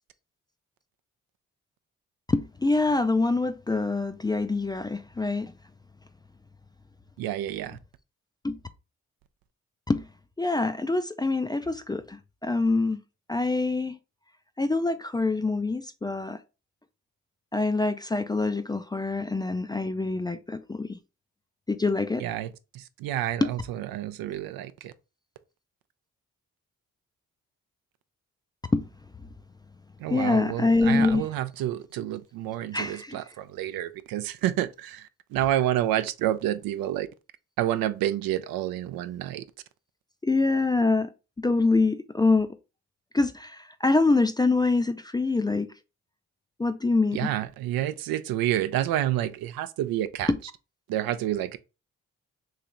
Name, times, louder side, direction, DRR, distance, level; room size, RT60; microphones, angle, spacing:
voice 1, 2.3-5.5 8.4-8.6 9.9-10.1 10.4-13.0 13.3-14.0 14.6-16.4 17.5-21.0 21.7-22.2 23.4-23.5 28.7-28.8 30.1-31.3 32.7-33.2 40.2-41.1 41.4-42.6 43.1-45.7 46.6-47.3 50.3-50.4, left 3 dB, 15° left, 0.3 m, -25 dB
voice 2, 7.2-7.8 22.2-22.5 22.7-24.9 30.0-37.1 37.6-39.4 47.1-50.3 50.9-51.6, right 12 dB, 75° right, 0.5 m, -29 dB
3.2 x 2.9 x 3.7 m
supercardioid pair, 45°, 35 cm